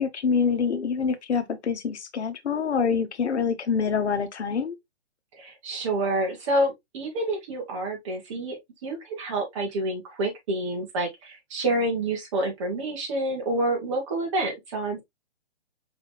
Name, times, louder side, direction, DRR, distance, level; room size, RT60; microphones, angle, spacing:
voice 1, 0.0-4.8, left 6 dB, 80° left, 1.0 m, -26 dB
voice 2, 5.4-15.0, right 1 dB, 25° right, 1.2 m, -28 dB
4.9 x 3.5 x 2.2 m
hypercardioid pair, 165°, 33 cm